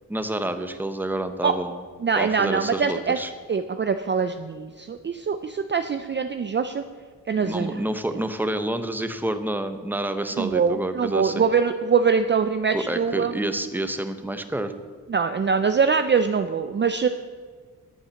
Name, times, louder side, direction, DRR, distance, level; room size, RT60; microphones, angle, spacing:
voice 1, 0.1-1.8 2.1-3.3 7.4-11.4 12.7-14.7, right 1 dB, 5° right, 8 dB, 0.8 m, -28 dB
voice 2, 2.0-3.2 3.5-6.8 7.3-7.8 10.4-13.4 15.1-17.1, right 5 dB, 35° right, 9 dB, 0.5 m, -23 dB
10.0 x 8.8 x 6.9 m, 1.6 s
wide cardioid pair, 125°, 34 cm